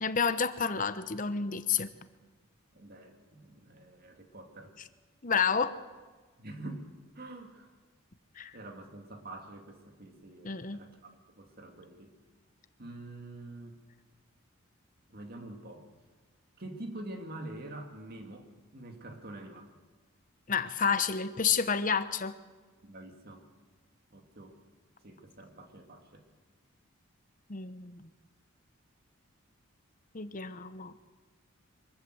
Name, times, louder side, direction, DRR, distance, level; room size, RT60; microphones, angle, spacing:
voice 1, 0.0-1.9 5.2-5.7 8.4-8.5 10.4-10.8 20.5-22.3 27.5-28.1 30.1-30.9, left 6 dB, 40° left, 12 dB, 0.9 m, -30 dB
voice 2, 2.7-4.8 6.4-7.7 8.5-12.1 12.8-13.8 15.1-15.9 16.6-19.7 22.8-23.4 24.1-24.6 25.0-26.2, right 1 dB, 45° right, 4 dB, 2.4 m, -46 dB
24.0 x 14.5 x 7.9 m, 1.3 s
head